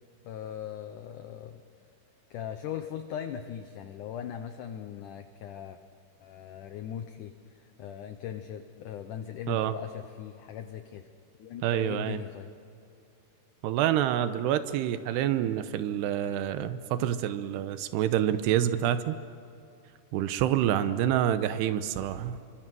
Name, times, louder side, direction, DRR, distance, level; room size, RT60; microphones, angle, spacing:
voice 1, 0.2-1.6 2.3-5.8 6.2-7.3 7.6-11.1 11.4-12.5, left 9 dB, 75° left, 8 dB, 1.9 m, -39 dB
voice 2, 11.6-12.2 13.6-19.2 20.1-22.4, right 11 dB, 90° right, 11 dB, 3.0 m, -27 dB
29.0 x 25.0 x 6.2 m, 2.5 s
omnidirectional pair, 4.7 m